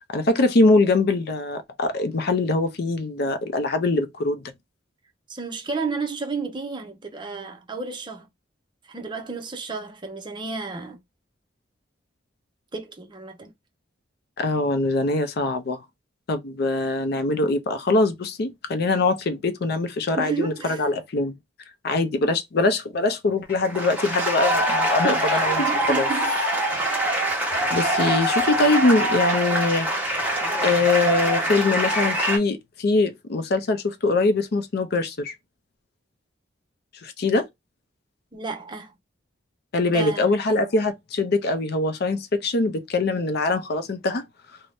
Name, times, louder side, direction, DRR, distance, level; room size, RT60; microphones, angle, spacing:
voice 1, 0.1-4.5 14.4-15.8 16.3-21.4 21.8-26.1 27.7-35.4 37.0-37.5 39.7-44.3, left 3 dB, 55° left, 0.5 m, -23 dB
voice 2, 5.3-8.3 8.9-11.0 12.7-13.5 20.2-20.9 25.0-26.6 38.3-38.9 39.9-40.4, right 4 dB, 25° right, 0.5 m, -32 dB
sound 1, 23.5-32.4, right 1 dB, 10° right, 0.9 m, -24 dB
2.6 x 2.1 x 3.3 m
head